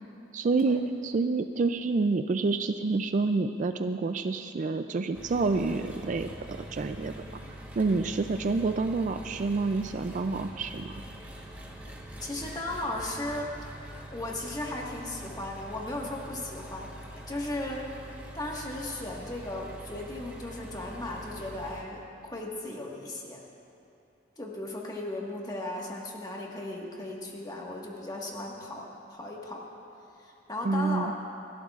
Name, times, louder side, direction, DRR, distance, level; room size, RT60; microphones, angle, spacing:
voice 1, 0.3-7.1 7.8-11.0 30.6-31.1, right 3 dB, 40° right, 8 dB, 0.3 m, -28 dB
Engine, 5.1-21.8, equal, 10° right, 1.2 m, -44 dB
voice 2, 7.0-7.3 7.8-8.1 12.2-13.5 13.8-17.8 18.3-23.4 24.4-29.6 30.2-31.1, left 1 dB, 20° left, -2 dB, 1.5 m, -36 dB
27.5 x 12.0 x 2.4 m, 2.7 s
head